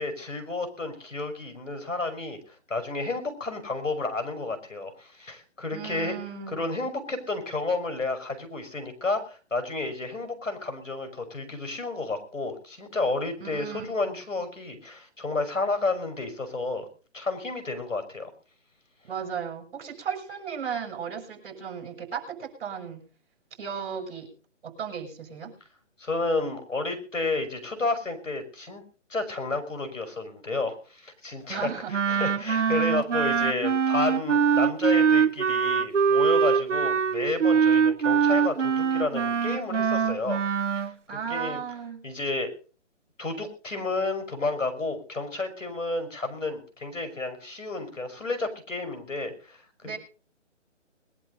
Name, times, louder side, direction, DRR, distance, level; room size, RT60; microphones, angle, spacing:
voice 1, 0.0-6.2 6.5-16.9 17.1-18.3 26.0-28.8 29.1-40.4 40.8-40.9 41.3-41.6 42.0-42.5 43.2-50.0, left 3 dB, 85° left, 6 dB, 5.6 m, -31 dB
voice 2, 5.7-6.6 13.4-14.2 19.1-23.1 23.6-24.3 24.6-25.5 31.5-32.2 41.1-42.0 49.8-50.0, right 7 dB, 45° right, 4 dB, 6.8 m, -35 dB
Wind instrument woodwind instrument, 31.9-40.9, right 6 dB, 75° right, 1.0 m, -23 dB
21.5 x 11.5 x 4.0 m, 0.39 s
figure-of-eight pair, 150°, 37 cm